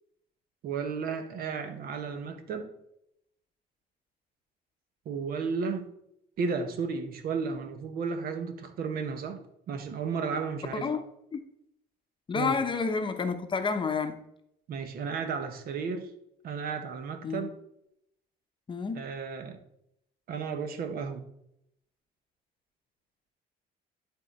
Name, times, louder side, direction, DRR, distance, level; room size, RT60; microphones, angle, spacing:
voice 1, 0.6-2.7 5.0-5.9 6.4-9.4 9.7-10.9 12.3-12.6 14.7-16.1 16.4-17.5 18.9-19.6 20.3-21.3, right 5 dB, 60° right, 8 dB, 1.0 m, -33 dB
voice 2, 10.7-11.4 12.3-14.2 17.2-17.5 18.7-19.1, left 5 dB, 30° left, 7 dB, 0.8 m, -30 dB
10.5 x 3.8 x 4.2 m, 0.78 s
cardioid pair, 110°, 17 cm